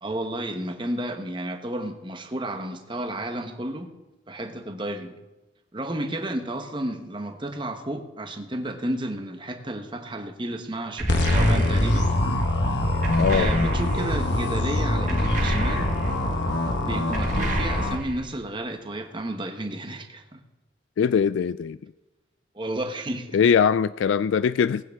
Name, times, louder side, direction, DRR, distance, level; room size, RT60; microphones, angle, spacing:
voice 1, 0.0-3.9 4.3-5.1 5.7-12.1 13.3-15.9 16.8-20.4 22.5-23.4, right 1 dB, 25° right, 6 dB, 1.1 m, -32 dB
sound 1, 11.0-12.1 13.0-14.1 15.1-16.2 17.1-18.2, right 1 dB, 40° right, 2.0 m, -29 dB
sound 2, 11.1-17.9, left 1 dB, 65° left, 1.4 m, -24 dB
voice 2, 13.2-13.5 21.0-21.8 23.3-24.8, left 7 dB, 80° left, 16 dB, 0.3 m, -21 dB
18.5 x 9.3 x 3.5 m, 1.1 s
head